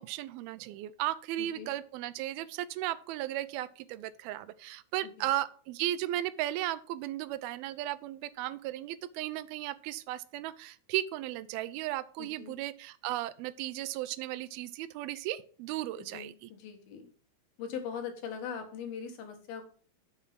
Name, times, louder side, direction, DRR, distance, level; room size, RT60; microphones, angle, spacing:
voice 1, 0.0-16.5, right 14 dB, 90° right, 16 dB, 2.5 m, -35 dB
voice 2, 1.4-1.7 5.2-5.3 12.2-12.6 16.1-17.1 17.6-19.6, left 7 dB, 85° left, 4 dB, 3.7 m, -41 dB
8.4 x 7.0 x 5.9 m, 0.42 s
omnidirectional pair, 4.2 m